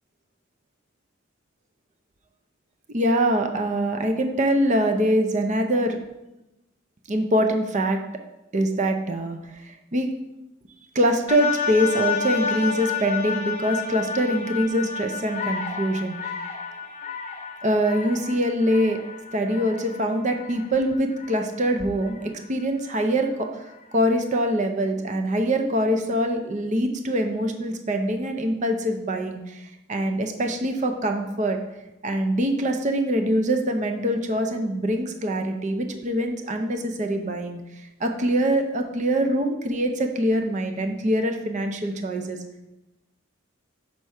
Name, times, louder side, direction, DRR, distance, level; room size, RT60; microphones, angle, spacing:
voice 1, 2.9-6.0 7.1-8.0 8.5-10.1 10.9-16.3 17.6-19.0 19.3-31.6 32.0-42.4, equal, 40° right, 5 dB, 0.6 m, -24 dB
sound 1, 11.3-21.5 22.1-22.2, left 6 dB, 30° left, 0.8 m, -31 dB
5.5 x 4.5 x 6.3 m, 0.96 s
head